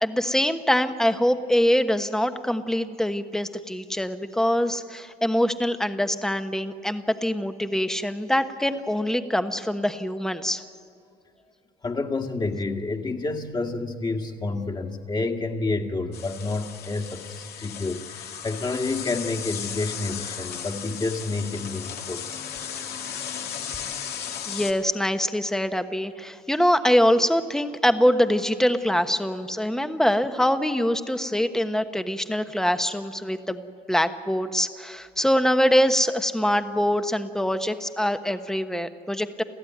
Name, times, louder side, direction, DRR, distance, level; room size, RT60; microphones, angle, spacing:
voice 1, 0.0-10.6 24.5-39.4, equal, 5° left, 8 dB, 1.2 m, -24 dB
voice 2, 11.8-22.3 23.0-23.4 23.7-23.8, left 3 dB, 25° left, 2 dB, 2.0 m, -29 dB
sound 1, 16.1-24.7, left 8 dB, 70° left, 2.1 m, -35 dB
29.5 x 14.0 x 9.4 m, 2.4 s
cardioid pair, 110°, 17 cm